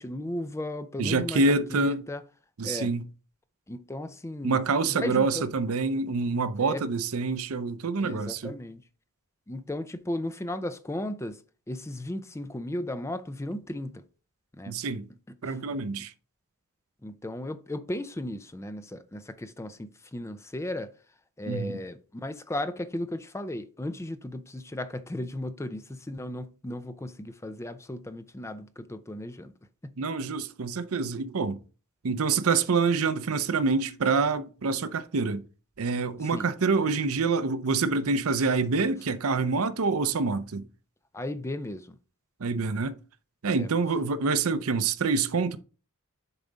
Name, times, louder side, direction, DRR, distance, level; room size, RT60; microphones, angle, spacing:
voice 1, 0.0-2.2 2.6-2.9 3.7-4.6 4.9-5.5 6.6-6.9 8.0-8.8 9.5-11.4 11.7-14.0 14.5-14.8 15.3-16.1 17.0-20.9 21.4-29.5 29.8-29.9 36.2-36.5 41.1-42.0 43.5-43.7, left 1 dB, 10° left, 0.5 m, -35 dB
voice 2, 1.0-2.0 2.6-3.1 4.4-8.5 14.7-15.1 15.4-16.1 21.5-21.8 30.0-31.6 32.0-35.4 35.8-40.6 42.4-43.0 43.4-45.6, right 4 dB, 70° right, 0.6 m, -26 dB
6.9 x 4.0 x 5.0 m
head